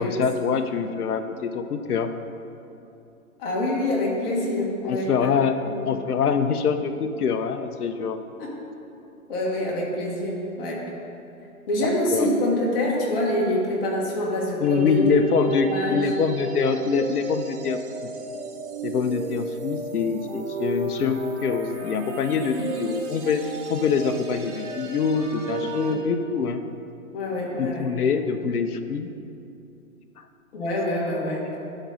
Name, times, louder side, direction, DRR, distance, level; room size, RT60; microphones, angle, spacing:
voice 1, 0.0-2.1 4.9-5.6 5.9-8.2 11.8-12.3 14.6-18.1 18.8-26.6 27.6-29.1, left 6 dB, 80° left, 9 dB, 0.7 m, -25 dB
voice 2, 3.4-5.3 5.7-5.8 8.4-8.5 9.3-10.9 11.7-15.0 15.6-16.0 22.3-22.8 25.8-26.0 27.1-27.9 30.5-31.6, left 1 dB, 40° left, -3 dB, 1.8 m, -26 dB
sound 1, 14.6-25.9, right 3 dB, 50° right, 1.1 m, -32 dB
11.5 x 4.1 x 4.0 m, 2.7 s
hypercardioid pair, 145°, 44 cm